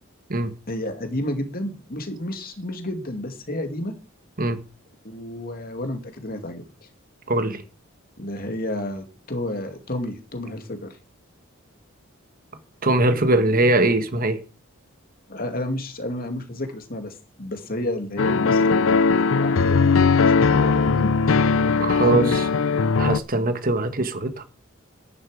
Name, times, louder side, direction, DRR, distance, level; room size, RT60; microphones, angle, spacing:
voice 1, 0.7-3.9 5.0-6.6 8.2-11.0 15.3-21.2 22.0-22.4, left 1 dB, 45° left, 2.5 m, -31 dB
voice 2, 7.3-7.6 12.8-14.4 21.8-22.2 23.0-24.4, right 2 dB, 40° right, 1.5 m, -21 dB
sound 1, 18.2-23.2, left 4 dB, 70° left, 0.6 m, -19 dB
11.0 x 11.0 x 4.9 m
head